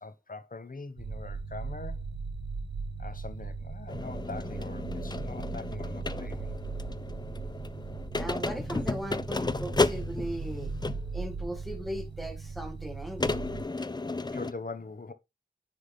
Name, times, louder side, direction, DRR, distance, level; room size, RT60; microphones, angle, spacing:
voice 1, 0.0-2.0 3.0-6.5 14.3-15.1, left 3 dB, 55° left, 0.9 m, -42 dB
sound 1, 1.0-13.6, right 4 dB, 90° right, 0.9 m, -38 dB
sound 2, 3.9-11.2 12.0-12.1 13.2-14.5, left 3 dB, 25° left, 0.4 m, -33 dB
voice 2, 8.2-10.7 11.1-13.4, right 1 dB, ahead, 1.9 m, -38 dB
10.0 x 3.6 x 3.3 m
wide cardioid pair, 55°, 18 cm